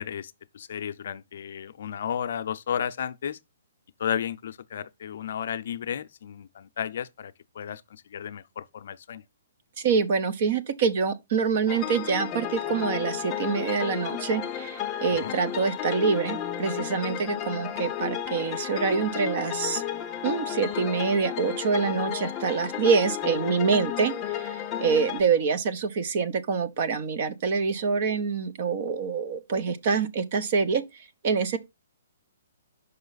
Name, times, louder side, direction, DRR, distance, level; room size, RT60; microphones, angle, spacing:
voice 1, 0.0-3.4 4.0-9.2 15.2-15.4, left 8 dB, 60° left, 0.5 m, -33 dB
voice 2, 9.8-19.8 20.2-31.6, right 5 dB, 45° right, 0.8 m, -26 dB
sound 1, 11.7-25.2, left 10 dB, 20° left, 0.7 m, -33 dB
5.5 x 5.4 x 4.0 m
hypercardioid pair, 160°, 0 cm